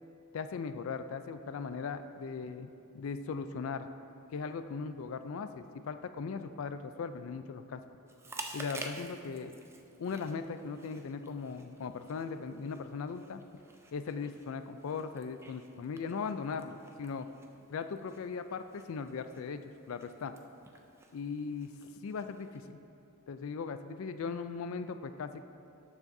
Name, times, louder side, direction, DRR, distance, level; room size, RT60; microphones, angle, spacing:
voice 1, 0.3-3.9 4.3-7.8 8.5-9.6 10.0-13.4 13.9-17.3 17.7-20.3 21.1-21.7 22.0-22.8 23.3-25.5, left 5 dB, 65° left, 10 dB, 0.4 m, -38 dB
Chewing mastication, 8.1-22.7, right 2 dB, 10° right, 0.4 m, -51 dB
12.5 x 7.2 x 2.7 m, 2.6 s
head